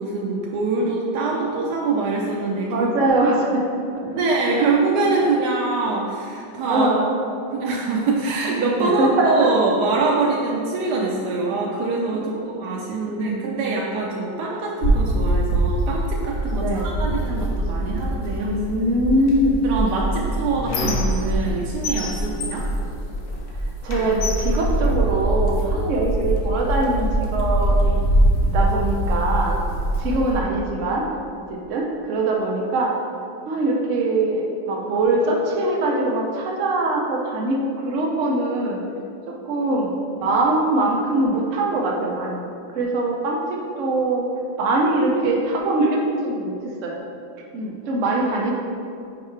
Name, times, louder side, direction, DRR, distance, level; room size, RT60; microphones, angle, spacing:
voice 1, 0.0-2.9 4.0-6.9 7.5-18.5 19.6-22.7, right 3 dB, 70° right, -3 dB, 1.0 m, -24 dB
voice 2, 2.7-3.6 4.6-4.7 6.7-7.1 8.8-9.5 12.2-12.5 13.2-13.6 16.5-16.9 18.3-19.6 23.8-28.0 28.4-29.6 30.0-31.0 31.5-32.9 33.5-38.8 39.3-42.5 42.7-44.3 44.6-46.5 46.8-47.0 47.5-48.5, right 2 dB, 85° right, -1 dB, 0.6 m, -22 dB
sound 1, 14.8-30.4, right 1 dB, 50° left, 1.2 m, -23 dB
Squeak, 19.8-21.5 21.8-23.5 23.9-25.6 26.4-26.5 26.8-27.8, left 4 dB, 80° left, 0.7 m, -32 dB
6.3 x 4.7 x 3.2 m, 2.5 s
omnidirectional pair, 2.2 m